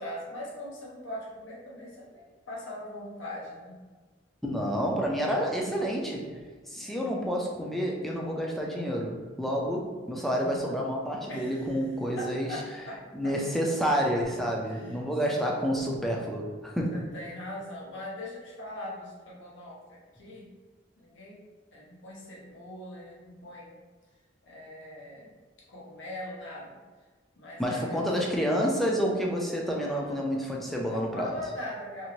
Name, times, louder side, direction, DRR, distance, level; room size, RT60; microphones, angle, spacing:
voice 1, 0.0-3.8 6.7-7.1 11.3-11.8 12.2-13.3 14.6-15.0 15.3-15.4 16.9-20.5 21.0-21.4 21.7-23.7 24.5-25.3 25.7-26.8 27.4-28.1 29.8-30.3 30.9-32.1, left 1 dB, 80° left, -5 dB, 0.9 m, -41 dB
voice 2, 4.4-6.4 6.7-12.6 13.1-16.9 27.6-31.3, equal, ahead, -2 dB, 0.4 m, -29 dB
2.7 x 2.5 x 3.0 m, 1.4 s
head